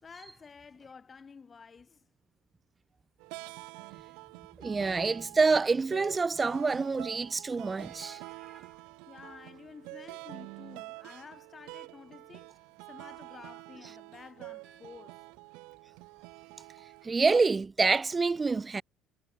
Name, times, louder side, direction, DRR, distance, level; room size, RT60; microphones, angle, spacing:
voice 1, 0.0-2.0 9.1-12.5 12.9-15.2, left 5 dB, 25° left, 5.0 m, -51 dB
sound 1, 3.2-17.6, right 28 dB, 85° right, 0.6 m, -47 dB
voice 2, 4.6-8.7 17.0-18.8, right 4 dB, 20° right, 0.3 m, -27 dB
cardioid pair, 135°, 0 cm